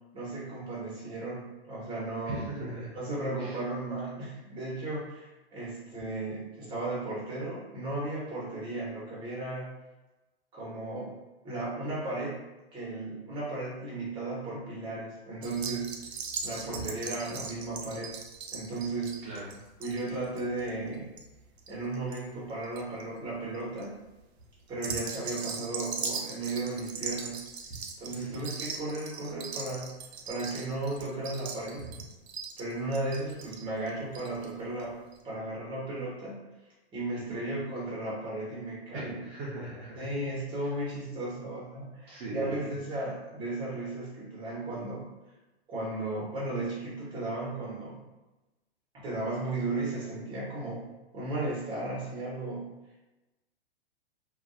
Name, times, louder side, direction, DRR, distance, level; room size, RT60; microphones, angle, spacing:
voice 1, 0.1-2.4 2.9-9.7 10.5-11.1 11.4-12.4 12.7-15.9 16.4-18.1 18.5-19.3 19.8-21.1 21.7-24.0 24.7-27.4 28.0-29.9 30.2-31.9 32.6-35.0 35.2-36.5 36.9-39.2 39.9-45.1 45.7-48.0 48.9-50.9 51.1-52.7, right 2 dB, 15° right, -6 dB, 0.9 m, -35 dB
voice 2, 2.3-2.9 3.4-3.6 16.7-16.9 19.2-19.6 28.2-28.5 37.3-37.5 38.9-40.1 42.1-42.7, right 2 dB, 40° right, -7 dB, 0.7 m, -39 dB
sound 1, 15.4-22.2 22.5-23.0 23.5-23.9 24.7-34.5 34.8-34.9 35.1-35.2, right 5 dB, 80° right, 0.5 m, -39 dB
2.5 x 2.3 x 2.3 m, 1.1 s
hypercardioid pair, 130°, 31 cm